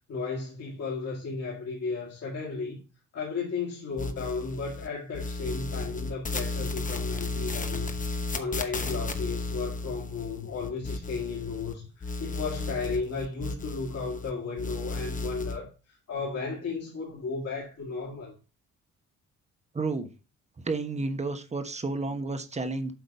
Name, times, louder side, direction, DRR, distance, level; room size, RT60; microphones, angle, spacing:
voice 1, 0.1-2.8 3.1-8.0 8.3-18.3, left 4 dB, 55° left, 2.3 m, -34 dB
sound 1, 4.0-4.9 5.1-11.7 12.0-14.3 14.6-15.6, left 3 dB, 25° left, 1.0 m, -34 dB
voice 2, 19.7-20.1 20.6-22.9, right 3 dB, 20° right, 1.1 m, -31 dB
7.9 x 4.0 x 5.3 m
cardioid pair, 90°, 30 cm